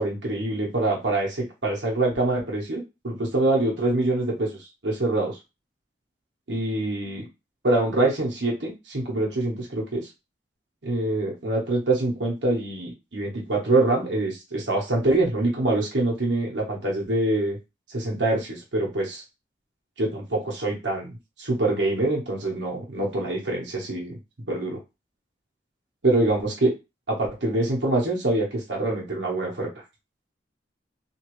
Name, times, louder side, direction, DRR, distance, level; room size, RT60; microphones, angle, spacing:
voice 1, 0.0-4.5 4.8-5.4 6.5-7.3 7.6-10.1 10.8-17.6 17.9-19.2 20.0-24.2 24.5-24.8 26.0-26.7 27.1-29.7, right 2 dB, 70° right, -2 dB, 1.1 m, -25 dB
3.0 x 2.7 x 3.1 m, 0.26 s
head